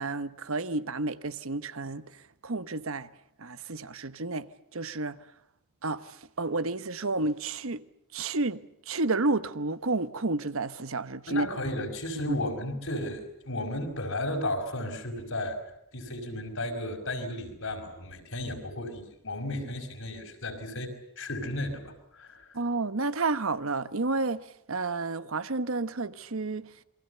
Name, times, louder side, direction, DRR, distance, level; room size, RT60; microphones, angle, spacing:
voice 1, 0.0-3.1 3.4-5.2 5.8-7.8 8.1-11.5 12.3-12.4 22.5-26.7, right 3 dB, 65° right, 1.1 m, -31 dB
voice 2, 11.3-15.6 15.9-22.6, left 1 dB, 65° left, 5.5 m, -34 dB
28.5 x 23.5 x 6.8 m
head